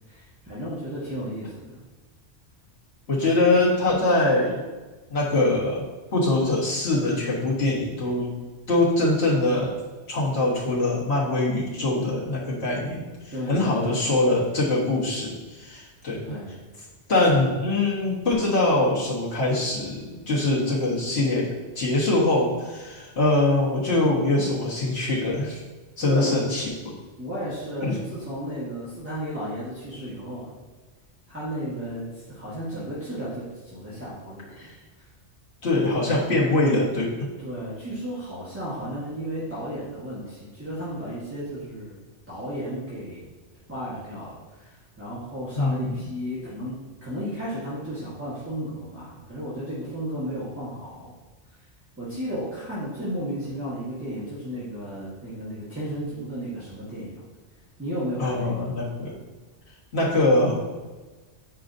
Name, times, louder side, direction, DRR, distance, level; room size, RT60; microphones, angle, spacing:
voice 1, 0.1-1.8 13.3-14.0 16.2-16.5 26.0-26.5 27.2-30.5 31.3-34.7 35.0-35.1 37.4-41.9 42.3-43.2 43.7-51.1 52.0-57.1 57.8-58.8, equal, 10° right, -10 dB, 1.4 m, -33 dB
voice 2, 3.1-4.6 5.1-5.8 6.1-8.3 8.7-9.8 10.1-13.0 13.5-16.2 17.1-25.6 26.0-26.9 27.8-28.0 34.6-34.7 35.6-37.3 45.6-45.9 58.2-59.1 59.9-60.7, left 2 dB, 60° left, -6 dB, 1.8 m, -23 dB
8.4 x 4.7 x 2.6 m, 1.3 s
omnidirectional pair, 1.2 m